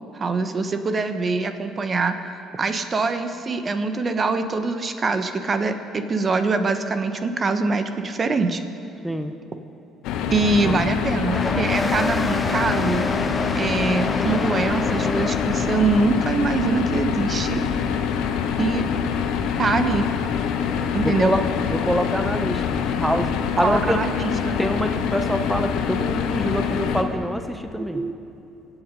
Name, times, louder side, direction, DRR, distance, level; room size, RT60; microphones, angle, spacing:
voice 1, 0.1-2.2 2.5-8.6 10.3-13.1 13.6-17.6 18.6-19.0 19.6-20.1 20.9-21.3 23.6-24.6 27.8-28.1, right 3 dB, 40° right, 9 dB, 1.1 m, -23 dB
sound 1, 10.0-27.0, left 7 dB, 70° left, 1.1 m, -25 dB
sound 2, 11.2-16.3, left 3 dB, 20° left, 0.5 m, -28 dB
voice 2, 21.0-21.4 21.7-22.6 23.0-23.3 23.6-24.0 24.6-28.0, equal, 5° right, 7 dB, 0.9 m, -25 dB
25.0 x 8.3 x 5.4 m, 2.9 s
hypercardioid pair, 60°, 0 cm